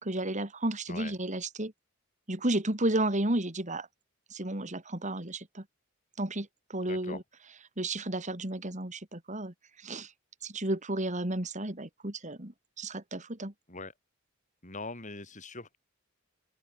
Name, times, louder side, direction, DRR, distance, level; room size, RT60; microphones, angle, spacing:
voice 1, 0.0-1.7 2.3-3.9 4.3-5.6 6.2-7.2 7.8-10.1 10.4-13.5, right 1 dB, 35° right, 3.1 m, -32 dB
voice 2, 6.9-7.2 13.7-13.9 14.6-15.8, left 3 dB, 35° left, 6.0 m, -42 dB
open air
head